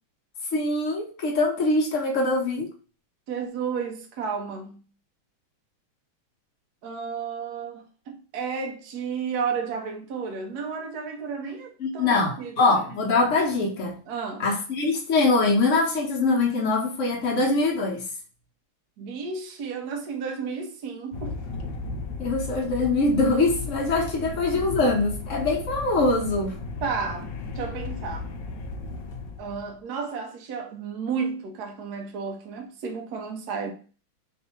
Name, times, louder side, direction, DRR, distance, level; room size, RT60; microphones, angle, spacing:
voice 1, 0.5-2.7 11.8-14.0 14.4-18.0 22.2-26.6, left 3 dB, 50° left, 1.0 m, -23 dB
voice 2, 3.3-4.8 6.8-12.8 14.1-14.5 19.0-21.4 24.2-24.4 26.8-28.3 29.4-33.7, right 5 dB, 60° right, 1.1 m, -32 dB
sound 1, 21.1-29.7, left 4 dB, 70° left, 1.2 m, -35 dB
3.7 x 2.6 x 4.3 m
omnidirectional pair, 2.2 m